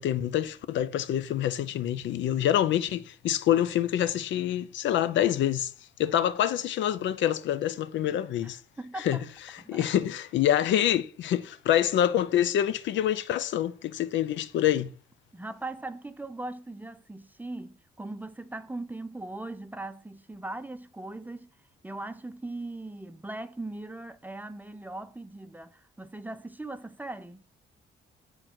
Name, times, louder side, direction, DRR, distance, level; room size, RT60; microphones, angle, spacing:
voice 1, 0.0-5.7 6.0-8.6 9.0-9.2 9.7-14.9, left 11 dB, 70° left, 0.5 m, -26 dB
voice 2, 8.4-9.2 9.6-9.9 15.3-21.5 21.8-27.4, right 2 dB, 10° right, 0.5 m, -39 dB
7.8 x 3.9 x 4.4 m
cardioid pair, 90°, 20 cm